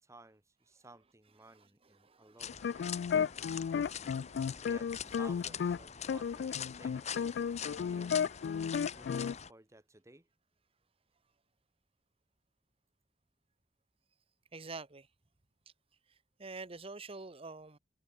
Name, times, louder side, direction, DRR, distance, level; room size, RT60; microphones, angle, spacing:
voice 1, 0.0-3.3 4.6-8.2 8.9-10.3, right 2 dB, 15° right, 1.9 m, -57 dB
voice 2, 2.0-2.4 2.9-3.0 14.5-15.1 16.4-17.8, right 3 dB, 35° right, 1.2 m, -46 dB
sound 1, 2.4-9.5, left 8 dB, 40° left, 0.9 m, -44 dB
sound 2, 2.5-5.8 6.1-9.3, left 7 dB, 70° left, 0.3 m, -33 dB
head